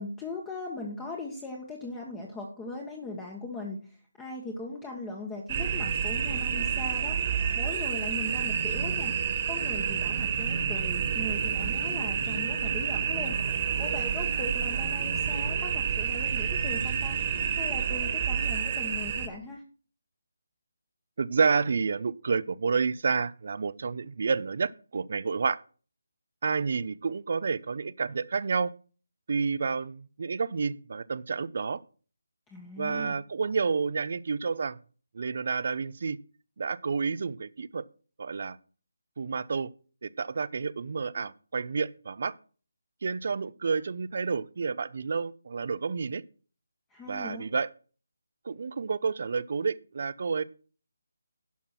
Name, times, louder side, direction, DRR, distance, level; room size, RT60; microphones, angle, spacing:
voice 1, 0.0-3.8 4.2-7.2 7.5-9.1 9.4-13.4 13.8-17.2 17.5-19.6 32.5-33.2 46.9-47.5, left 2 dB, 10° left, -1 dB, 1.3 m, -39 dB
sound 1, 5.5-19.3, right 7 dB, 25° right, 1.7 m, -29 dB
voice 2, 21.2-25.6 26.4-28.7 29.3-31.8 32.8-34.8 35.1-36.2 36.6-37.8 38.2-38.6 39.2-39.7 40.0-42.3 43.0-46.2 47.1-47.7 48.5-50.4, right 5 dB, 50° right, 18 dB, 0.6 m, -29 dB
11.5 x 5.8 x 6.0 m, 0.39 s
figure-of-eight pair, 165°, 0 cm